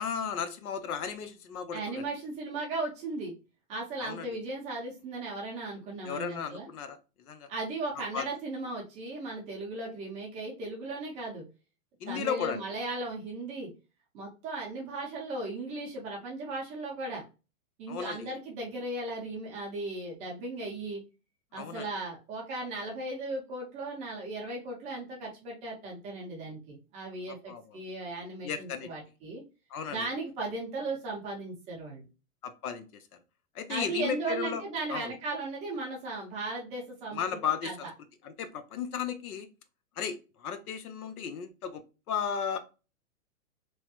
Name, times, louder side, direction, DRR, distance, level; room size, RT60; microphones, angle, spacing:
voice 1, 0.0-2.1 4.0-4.3 6.0-7.0 7.3-7.5 8.1-8.2 12.0-12.6 17.9-18.3 21.6-21.9 27.5-27.8 28.4-28.9 29.7-30.1 32.4-33.0 33.5-34.6 34.9-35.1 37.1-37.9 38.2-39.5 40.0-41.8 42.1-42.6, left 7 dB, 90° left, 9 dB, 0.8 m, -34 dB
voice 2, 1.7-3.3 3.7-6.7 7.5-11.4 12.1-13.7 14.1-17.2 17.8-21.0 21.5-29.4 29.9-32.0 33.7-37.2 37.6-37.9, right 2 dB, 15° right, -2 dB, 0.6 m, -36 dB
3.1 x 2.0 x 2.9 m, 0.30 s
hypercardioid pair, 160°, 43 cm